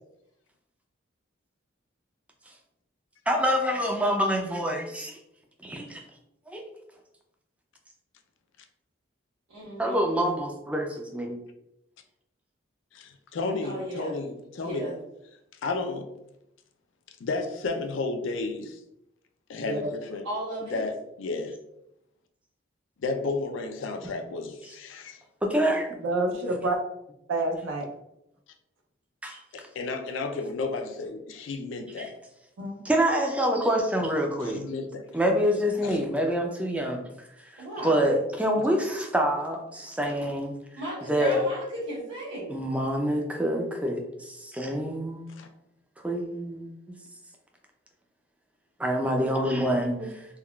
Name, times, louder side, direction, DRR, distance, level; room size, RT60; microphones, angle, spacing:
voice 1, 3.3-5.2 5.6-6.0 6.5-6.6 9.8-11.4 25.4-25.9 29.2-29.4 32.0-32.1 32.8-34.6 35.1-37.1 37.5-40.6 41.0-41.4 42.5-45.2 46.0-46.7 48.8-50.0, equal, 5° right, 2 dB, 0.3 m, -26 dB
voice 2, 9.5-10.1 13.6-14.2 14.6-15.0 20.2-20.8 37.6-38.0 40.8-42.6, right 1 dB, 65° right, -9 dB, 1.1 m, -35 dB
voice 3, 12.9-14.9 15.6-16.1 17.2-18.8 19.5-20.3 20.6-21.5 23.0-25.2 29.5-32.1 34.5-35.0 35.8-36.0 38.7-38.8 45.4-45.5, left 3 dB, 75° left, 6 dB, 0.4 m, -32 dB
voice 4, 19.6-19.9 26.0-26.8 27.3-27.9 32.6-32.8 50.0-50.1, right 2 dB, 85° right, 2 dB, 0.5 m, -28 dB
3.5 x 2.2 x 2.2 m, 0.84 s
head